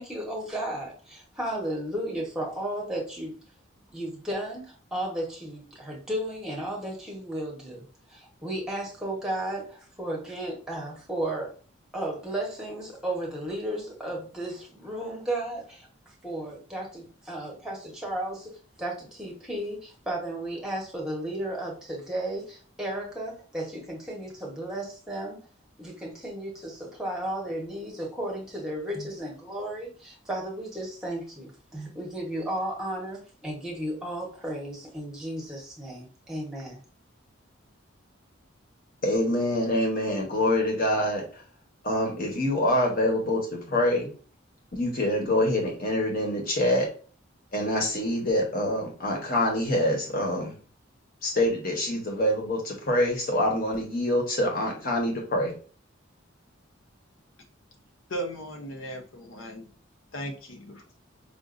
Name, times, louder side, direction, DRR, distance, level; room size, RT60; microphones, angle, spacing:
voice 1, 0.0-3.4 3.9-11.5 11.9-15.9 16.2-25.4 25.8-36.8, right 1 dB, 5° right, -2 dB, 1.0 m, -34 dB
voice 2, 39.0-41.4 41.8-44.1 44.7-46.9 47.5-50.5 51.2-55.5, left 1 dB, 45° left, 0 dB, 1.1 m, -25 dB
voice 3, 58.1-59.7 60.1-60.8, right 1 dB, 70° left, 5 dB, 0.8 m, -36 dB
5.1 x 2.5 x 2.5 m, 0.39 s
head